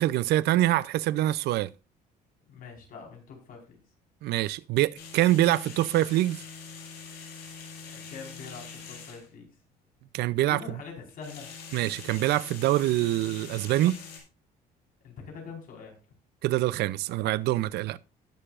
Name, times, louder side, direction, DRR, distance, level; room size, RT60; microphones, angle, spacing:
voice 1, 0.0-1.7 4.2-6.4 10.1-10.6 11.7-14.0 16.4-18.0, right 15 dB, 75° right, 0.5 m, -25 dB
voice 2, 2.5-3.8 7.8-9.5 10.5-11.5 15.0-15.9, left 5 dB, 55° left, 4.5 m, -44 dB
sound 1, 4.9-9.3 11.1-14.2, left 5 dB, 80° left, 5.0 m, -44 dB
18.5 x 6.8 x 2.5 m
cardioid pair, 110°, 17 cm